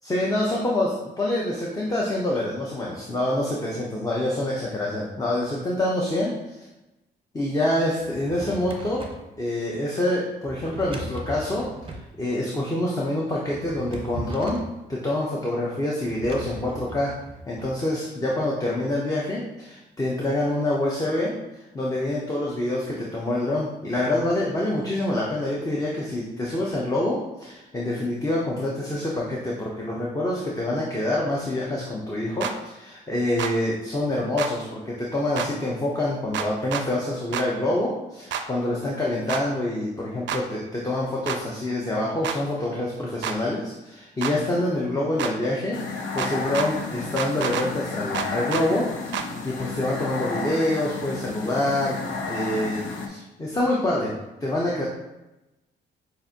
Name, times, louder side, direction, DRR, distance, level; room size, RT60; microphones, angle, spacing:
voice 1, 0.0-0.9 1.2-6.3 7.3-9.0 9.4-11.7 12.2-14.6 14.9-17.1 17.5-21.3 21.7-45.8 46.1-48.9 49.4-52.0 52.2-52.8 53.1-54.1 54.4-54.8, left 1 dB, 20° left, -4 dB, 0.7 m, -26 dB
Drawer open or close, 8.0-9.3 10.4-12.1 13.4-14.8 16.1-17.7, right 2 dB, 25° right, 0.7 m, -38 dB
sound 1, 32.4-32.5 33.4-33.5 34.4-34.5 35.4-35.5 36.3-36.9 37.3-37.5 38.3-38.4 39.3-39.4 40.3-40.4 41.3-41.4 42.2-42.4 43.2-43.4 44.2-44.4 45.2-45.3 46.2-46.7 47.2-47.7 48.1-48.7 49.1-49.3, right 8 dB, 65° right, 0.4 m, -28 dB
sound 2, 45.7-53.1, left 4 dB, 75° left, 0.7 m, -32 dB
7.0 x 2.5 x 2.7 m, 1.0 s
cardioid pair, 90°, 20 cm